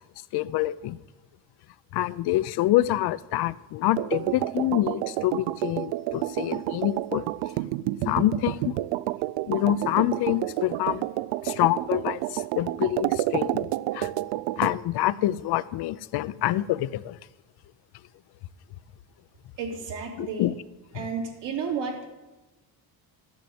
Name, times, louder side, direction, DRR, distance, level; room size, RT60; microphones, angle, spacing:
voice 1, 0.3-1.0 1.9-7.3 8.1-8.8 9.5-11.0 11.4-13.7 13.9-14.1 14.6-17.2 20.2-20.5 20.9-21.0, left 14 dB, 60° left, 18 dB, 0.6 m, -26 dB
sound 1, 4.0-14.8, right 16 dB, 90° right, 0.5 m, -29 dB
voice 2, 19.6-20.5 20.9-22.0, right 5 dB, 70° right, 0 dB, 3.4 m, -32 dB
12.5 x 7.2 x 7.9 m, 1.1 s
cardioid pair, 135°, 44 cm